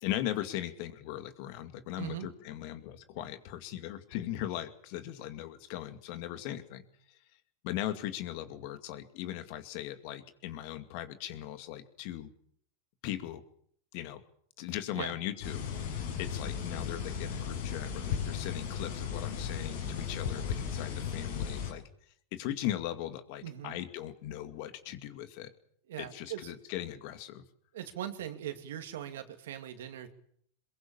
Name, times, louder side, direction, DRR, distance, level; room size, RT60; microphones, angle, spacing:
voice 1, 0.0-7.2 7.6-12.3 13.0-13.4 13.9-14.2 14.6-21.8 22.3-25.5 26.0-27.4, left 13 dB, 60° left, 10 dB, 2.3 m, -39 dB
voice 2, 2.0-2.3 14.9-15.1 23.4-23.8 25.9-26.5 27.7-30.1, right 11 dB, 80° right, 8 dB, 2.7 m, -40 dB
sound 1, 15.4-21.7, left 7 dB, 75° left, 6.2 m, -36 dB
23.0 x 22.0 x 7.3 m, 0.64 s
hypercardioid pair, 105°, 0 cm